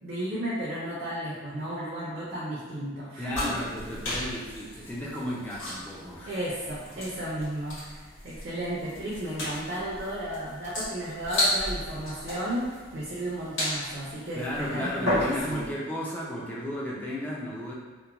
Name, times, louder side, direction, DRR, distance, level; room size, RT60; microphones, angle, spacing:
voice 1, 0.0-3.6 6.3-15.6, right 1 dB, 50° right, -8 dB, 0.5 m, -34 dB
voice 2, 3.2-6.4 6.9-7.1 14.3-17.7, left 1 dB, 10° left, -6 dB, 0.3 m, -34 dB
sound 1, 3.3-15.7, left 1 dB, 85° left, 1.5 m, -34 dB
2.9 x 2.1 x 2.3 m, 1.4 s
head